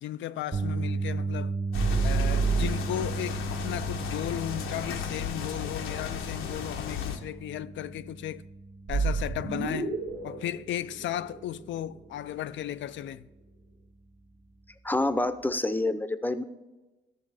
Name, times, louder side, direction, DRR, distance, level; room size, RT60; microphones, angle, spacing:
voice 1, 0.0-1.6 2.0-8.4 8.9-9.9 10.2-13.3, left 12 dB, 70° left, 0.5 m, -35 dB
sound 1, 0.5-12.8 13.1-13.4 15.6-15.7, right 3 dB, 35° right, 1.0 m, -36 dB
sound 2, 1.7-7.2, left 8 dB, 85° left, 1.0 m, -35 dB
sound 3, 1.7-3.3 8.9-12.0, right 4 dB, 85° right, 1.7 m, -29 dB
voice 2, 14.8-16.4, left 2 dB, 10° left, 0.7 m, -27 dB
12.5 x 6.9 x 4.9 m
cardioid pair, 90°, 20 cm